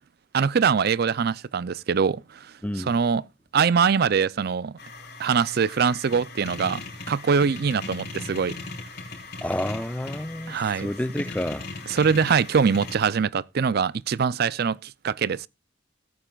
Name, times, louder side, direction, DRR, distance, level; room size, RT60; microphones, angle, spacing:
voice 1, 0.3-2.4 2.8-3.2 3.5-4.7 5.2-6.8 7.1-8.5 10.5-10.9 11.9-15.5, right 6 dB, 55° right, 0.4 m, -23 dB
voice 2, 2.6-2.9 9.4-11.6, left 1 dB, 5° left, 0.5 m, -29 dB
sound 1, 4.8-13.0, left 3 dB, 55° left, 4.2 m, -38 dB
18.0 x 8.9 x 2.3 m
head